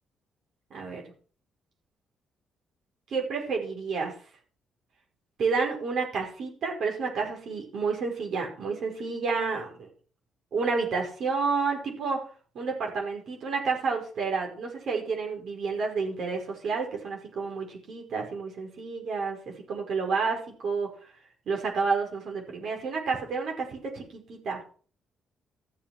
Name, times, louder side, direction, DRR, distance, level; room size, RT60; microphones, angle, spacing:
voice 1, 0.7-1.0 3.1-4.1 5.4-9.9 10.5-12.2 12.5-20.9 21.5-24.6, right 4 dB, 65° right, 1 dB, 5.3 m, -30 dB
14.0 x 7.1 x 6.2 m, 0.42 s
cardioid pair, 90°, 0 cm